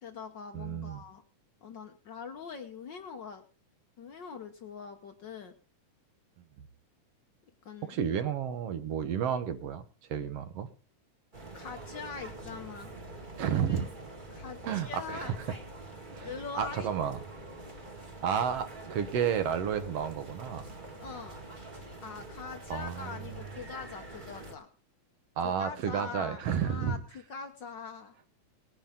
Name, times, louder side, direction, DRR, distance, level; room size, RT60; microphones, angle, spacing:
voice 1, 0.0-1.2 1.6-3.4 4.0-5.5 7.6-7.9 11.5-12.9 14.3-15.4 16.2-16.9 21.0-21.4 22.0-24.7 25.4-28.2, left 5 dB, 80° left, 6 dB, 1.0 m, -43 dB
voice 2, 0.5-1.0 6.6-6.7 7.8-9.8 10.1-10.7 13.4-13.9 14.6-15.5 16.1-16.3 16.5-17.2 18.2-20.7 22.7-23.2 25.4-27.0, right 8 dB, 60° right, 11 dB, 1.8 m, -31 dB
sound 1, 11.3-24.5, right 2 dB, 20° right, 1.4 m, -45 dB
19.5 x 10.5 x 3.6 m, 0.36 s
omnidirectional pair, 3.6 m